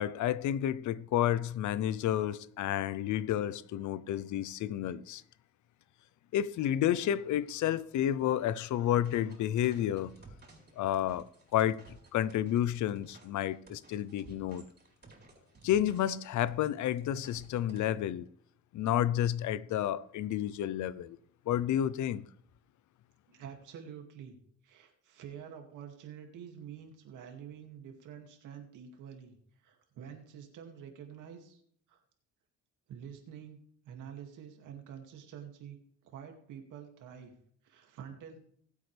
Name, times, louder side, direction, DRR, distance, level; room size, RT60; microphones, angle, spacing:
voice 1, 0.0-5.2 6.3-10.1 10.8-11.2 11.5-11.8 12.1-14.7 15.6-18.3 18.7-21.2 21.5-22.2, left 11 dB, 75° left, 0.7 m, -30 dB
sound 1, 8.9-17.9, right 3 dB, 30° right, 4.1 m, -56 dB
voice 2, 23.3-24.4 24.6-31.6 31.9-32.0 32.9-33.6 33.8-35.8 36.0-37.3 37.6-38.4, right 8 dB, 85° right, 2.4 m, -48 dB
19.5 x 8.3 x 3.4 m
cardioid pair, 90°, 30 cm